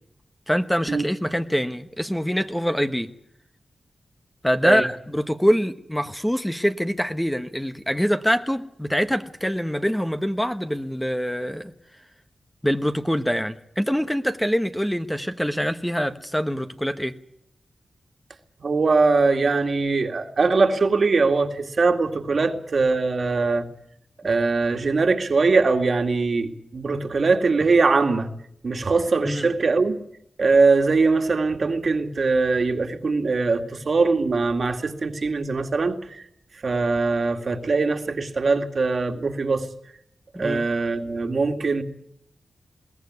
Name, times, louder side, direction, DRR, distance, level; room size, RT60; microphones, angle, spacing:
voice 1, 0.5-3.1 4.4-11.7 12.6-17.1 29.3-29.5 40.3-40.7, equal, 5° left, 9 dB, 1.1 m, -24 dB
voice 2, 18.6-23.7 24.2-28.3 28.6-30.0 30.4-36.2 36.6-39.7 40.3-41.8, right 4 dB, 60° right, 6 dB, 2.1 m, -21 dB
22.0 x 17.0 x 9.6 m, 0.74 s
cardioid pair, 65°, 0 cm